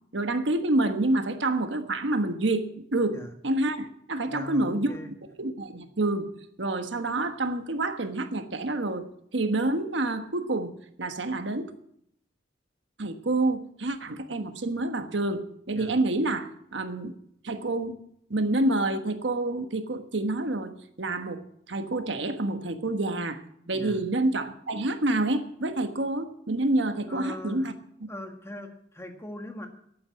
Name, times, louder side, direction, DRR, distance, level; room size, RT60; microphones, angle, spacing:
voice 1, 0.1-3.2 3.4-4.9 5.4-6.3 6.6-9.0 9.3-10.7 11.0-11.7 13.0-17.1 17.4-17.9 18.3-20.7 21.0-23.4 23.7-27.7, right 2 dB, 75° right, 8 dB, 1.3 m, -28 dB
voice 2, 4.3-5.1 15.7-15.9 23.7-24.0 27.1-27.7 28.1-29.7, left 1 dB, 15° left, 5 dB, 1.6 m, -40 dB
12.5 x 8.8 x 8.2 m, 0.71 s
head